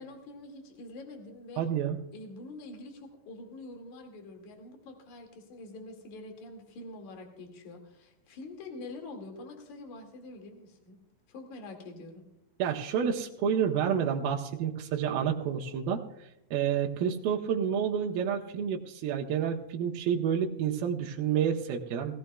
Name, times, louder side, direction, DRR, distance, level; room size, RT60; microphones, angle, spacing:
voice 1, 0.0-1.7 2.1-11.0 11.3-12.2, left 2 dB, 55° left, 3 dB, 3.2 m, -45 dB
voice 2, 1.6-2.0 12.6-16.0 16.5-22.1, right 8 dB, 80° right, 1 dB, 2.7 m, -29 dB
19.5 x 16.0 x 2.3 m, 0.85 s
omnidirectional pair, 4.4 m